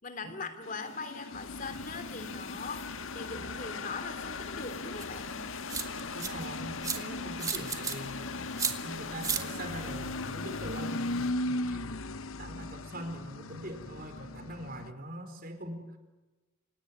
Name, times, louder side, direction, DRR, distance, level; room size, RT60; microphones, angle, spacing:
voice 1, 0.0-5.4, left 4 dB, 40° left, 9 dB, 3.0 m, -41 dB
sound 1, 0.6-11.3, left 5 dB, 75° left, 1.6 m, -41 dB
sound 2, 1.3-14.9, left 1 dB, 90° left, 1.0 m, -39 dB
sound 3, 5.0-5.1 5.7-6.3 6.8-7.0 7.4-8.0 8.6-8.7 9.2-9.4, right 5 dB, 15° right, 2.2 m, -31 dB
voice 2, 6.1-8.3 8.7-11.9 12.4-16.0, right 1 dB, 45° right, 7 dB, 4.6 m, -42 dB
28.5 x 18.0 x 9.9 m, 1.2 s
head